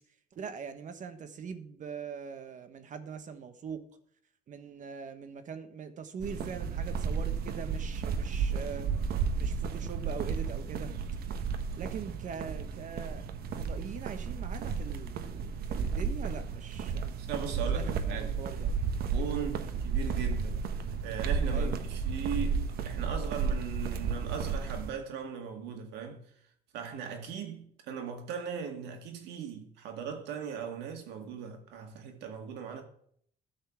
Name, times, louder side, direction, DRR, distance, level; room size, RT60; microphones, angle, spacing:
voice 1, 0.3-3.8 4.5-8.9 9.4-10.9 11.8-13.3 13.5-17.2 17.5-18.7 19.3-19.5 21.5-21.7, right 6 dB, 50° right, 1.3 m, -42 dB
sound 1, 6.2-24.9, right 5 dB, 65° right, 1.0 m, -33 dB
voice 2, 17.2-18.4 19.1-20.6 21.0-26.2 26.7-32.8, right 7 dB, 85° right, 2.0 m, -39 dB
12.5 x 4.3 x 7.2 m
cardioid pair, 110°, 17 cm